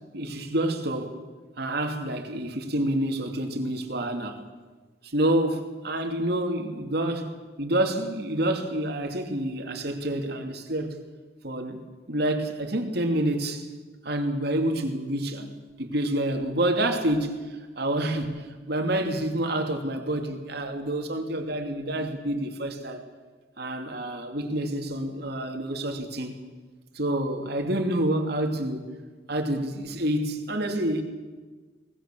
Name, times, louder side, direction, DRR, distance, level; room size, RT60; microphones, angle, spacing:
voice 1, 0.1-1.1 1.6-4.4 5.0-11.0 11.4-11.8 12.1-13.7 14.0-15.5 15.8-23.0 23.6-26.4 26.9-28.8 29.3-31.0, right 1 dB, 60° right, 4 dB, 2.8 m, -28 dB
23.0 x 19.5 x 7.6 m, 1.4 s
head